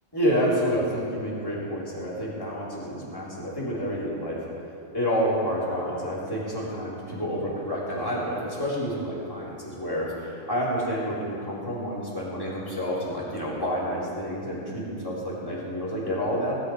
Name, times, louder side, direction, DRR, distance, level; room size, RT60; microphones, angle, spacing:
voice 1, 0.1-4.4 4.9-16.6, equal, 10° left, -7 dB, 3.2 m, -29 dB
18.0 x 10.0 x 4.9 m, 2.7 s
omnidirectional pair, 2.4 m